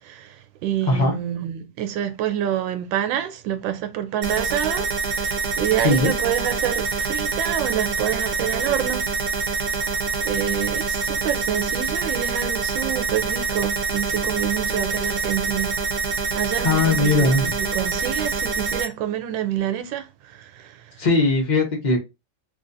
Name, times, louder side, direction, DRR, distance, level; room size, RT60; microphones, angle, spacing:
voice 1, 0.0-9.1 9.4-9.9 10.2-15.8 16.3-21.0, right 11 dB, 90° right, 1.3 m, -27 dB
voice 2, 0.8-1.2 5.8-6.1 16.6-17.5 21.0-22.0, left 2 dB, 85° left, 0.4 m, -19 dB
sound 1, 4.2-18.9, right 4 dB, 65° right, 1.1 m, -25 dB
3.3 x 2.5 x 2.5 m
omnidirectional pair, 2.0 m